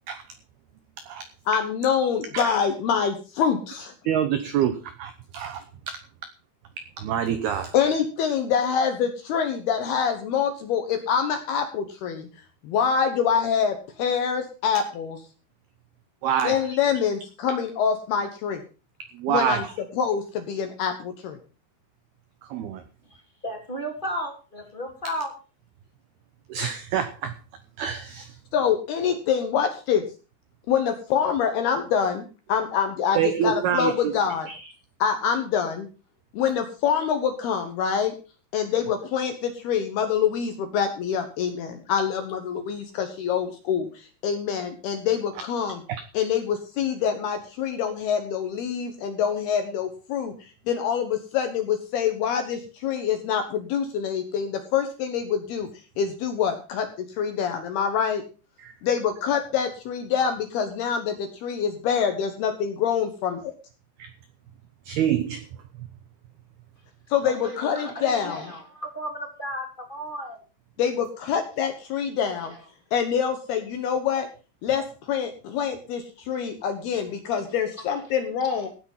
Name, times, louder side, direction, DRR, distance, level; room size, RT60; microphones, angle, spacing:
voice 1, 1.5-3.9 7.7-12.3 12.6-15.2 16.4-18.6 19.3-19.6 20.0-21.4 28.5-30.1 30.7-32.2 32.5-34.5 35.0-35.9 36.3-38.1 38.5-45.8 46.1-55.7 56.0-58.2 58.8-63.5 67.1-68.5 70.8-72.5 72.9-74.3 74.6-78.7, left 7 dB, 70° left, 2.7 m, -25 dB
voice 2, 4.1-5.7 7.0-7.7 16.2-16.6 19.1-19.7 22.4-22.8 26.5-27.4 27.8-28.4 33.2-34.1 34.5-34.7 58.6-58.7 64.0-64.1 64.9-65.5 65.8-65.9, right 9 dB, 80° right, 2.3 m, -26 dB
voice 3, 23.1-25.3 67.4-70.4 72.4-72.5, equal, 15° left, 2.2 m, -34 dB
16.0 x 8.9 x 5.6 m
omnidirectional pair, 5.9 m